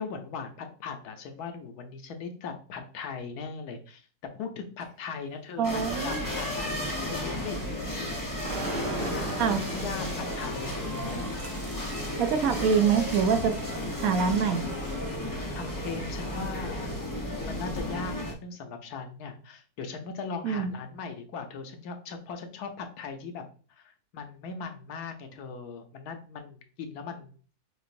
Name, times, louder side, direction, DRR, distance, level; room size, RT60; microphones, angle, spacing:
voice 1, 0.0-4.0 4.3-6.7 7.1-8.4 8.8-11.2 15.5-16.9 17.4-23.4 23.7-27.3, left 5 dB, 75° left, 5 dB, 1.2 m, -39 dB
Printer, 4.9-6.1 6.4-16.0, equal, 25° right, 1.3 m, -48 dB
sound 1, 5.6-18.3, left 1 dB, 30° left, 0.3 m, -34 dB
voice 2, 5.6-6.2 9.4-9.6 12.2-13.5 14.0-14.6 20.4-20.8, right 6 dB, 70° right, 8 dB, 0.9 m, -25 dB
sound 2, 8.4-14.6, right 2 dB, 45° right, 0.9 m, -39 dB
6.6 x 2.5 x 2.5 m, 0.40 s
omnidirectional pair, 1.7 m